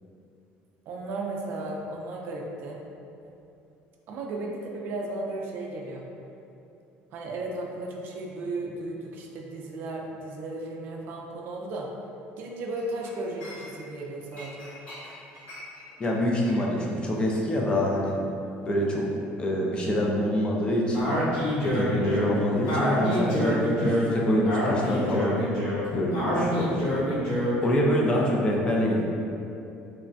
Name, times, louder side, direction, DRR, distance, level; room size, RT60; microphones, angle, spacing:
voice 1, 0.9-2.8 4.1-6.0 7.1-11.9 12.4-14.7, right 2 dB, 55° right, 0 dB, 0.3 m, -35 dB
Chink clink, 12.7-14.0 14.3-18.9 19.2-19.4, left 1 dB, 40° left, 1.4 m, -46 dB
voice 2, 16.0-18.2 18.6-19.1 19.4-21.2 21.6-25.4 25.9-26.9 27.6-29.0, equal, 20° left, -2 dB, 0.3 m, -25 dB
Speech, 20.9-27.7, equal, 55° left, 1.3 m, -27 dB
3.2 x 2.1 x 2.5 m, 2.7 s
cardioid pair, 150°, 4 cm